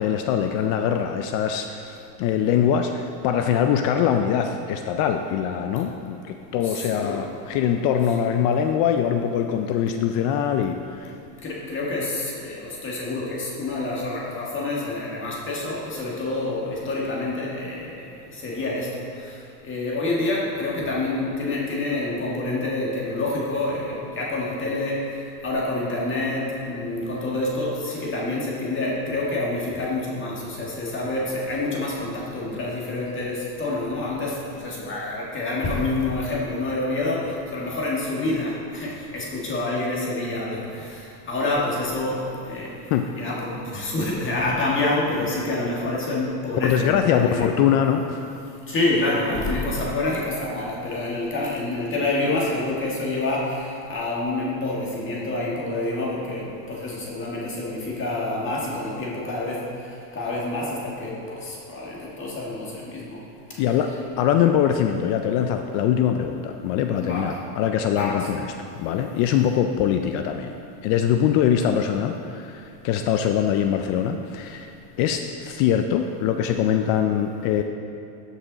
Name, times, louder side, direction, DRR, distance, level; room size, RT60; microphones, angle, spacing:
voice 1, 0.0-11.1 42.9-43.1 46.6-48.2 63.6-63.9 64.2-70.6 70.8-77.6, left 9 dB, 45° left, 6 dB, 0.4 m, -23 dB
voice 2, 6.6-7.3 11.4-18.9 19.2-47.6 48.7-63.2 67.0-67.4 67.9-68.3, left 2 dB, 25° left, -4 dB, 1.8 m, -27 dB
13.0 x 5.7 x 4.0 m, 2.8 s
supercardioid pair, 135°, 48 cm